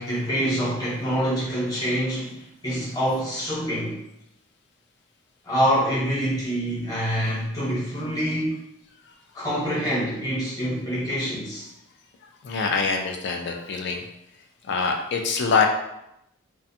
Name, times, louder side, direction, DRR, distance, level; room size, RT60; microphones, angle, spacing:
voice 1, 0.0-4.0 5.5-8.6 9.3-11.7, equal, 20° left, -7 dB, 0.9 m, -26 dB
voice 2, 12.4-14.0 14.6-15.7, left 5 dB, 55° left, 3 dB, 0.4 m, -24 dB
2.4 x 2.3 x 2.6 m, 0.81 s
head